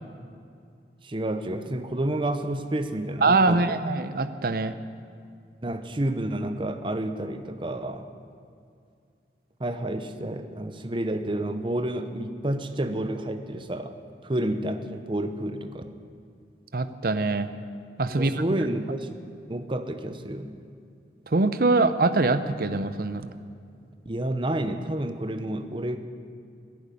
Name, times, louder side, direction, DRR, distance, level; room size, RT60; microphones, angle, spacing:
voice 1, 1.0-3.8 5.6-8.1 9.6-14.0 14.2-15.9 18.1-19.1 19.5-20.6 24.0-26.0, right 1 dB, 30° right, 9 dB, 0.8 m, -30 dB
voice 2, 3.2-4.7 16.7-17.5 18.0-18.4 21.3-23.3, right 3 dB, 55° right, 12 dB, 0.7 m, -23 dB
13.5 x 10.5 x 10.0 m, 2.4 s
head